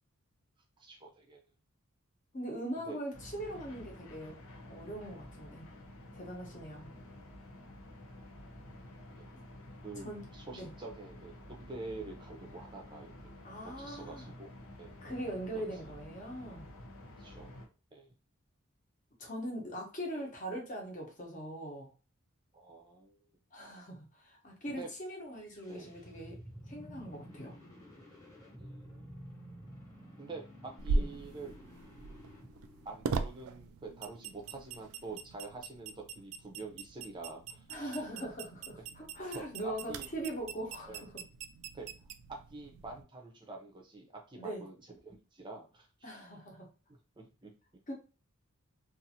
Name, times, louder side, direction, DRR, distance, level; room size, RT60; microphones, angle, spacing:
voice 1, 0.8-1.4 2.8-3.0 5.4-5.5 9.1-9.2 9.8-13.3 13.6-14.5 14.8-15.0 15.5-15.6 17.2-17.6 17.9-18.1 20.5-20.6 22.5-23.1 24.8-24.9 25.7-25.9 28.6-29.2 30.2-31.5 32.8-38.0 39.3-40.1 40.9-41.0 41.7-41.9 42.5-46.2 47.2-47.5, right 3 dB, 20° right, 1 dB, 0.6 m, -47 dB
voice 2, 2.3-4.4 4.7-5.7 6.1-6.9 9.3-9.4 10.0-10.2 10.5-10.7 13.4-14.3 15.0-16.7 19.2-21.9 23.5-26.4 26.7-27.5 30.9-31.1 37.7-41.1 44.4-44.6 46.0-46.7 47.9-48.0, right 1 dB, 35° left, 0 dB, 0.9 m, -41 dB
sound 1, 3.1-17.7, left 1 dB, 80° left, 0.8 m, -51 dB
sound 2, 25.3-33.4, equal, 15° left, 1.0 m, -52 dB
sound 3, 30.8-43.0, right 3 dB, 75° right, 0.3 m, -40 dB
2.6 x 2.5 x 2.7 m, 0.33 s
head